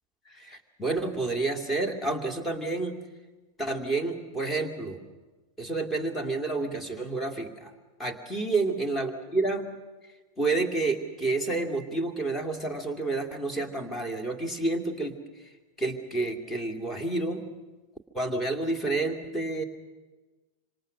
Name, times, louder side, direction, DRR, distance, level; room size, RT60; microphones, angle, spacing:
voice 1, 0.3-3.0 3.6-5.0 5.6-7.7 8.0-9.7 10.4-15.5 15.8-17.4 18.1-19.6, right 3 dB, 10° left, 5 dB, 2.5 m, -29 dB
26.5 x 26.0 x 6.3 m, 1.2 s
figure-of-eight pair, 90°, 0 cm